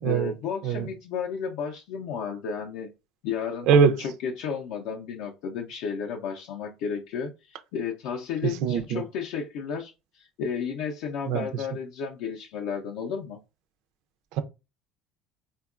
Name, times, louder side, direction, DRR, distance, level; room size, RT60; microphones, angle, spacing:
voice 1, 0.0-2.9 3.2-3.7 4.0-13.4, left 6 dB, 65° left, 0.4 m, -33 dB
voice 2, 8.6-9.0 11.3-11.4, right 6 dB, 60° right, 0.4 m, -21 dB
3.5 x 2.2 x 2.4 m
cardioid pair, 150°, 0 cm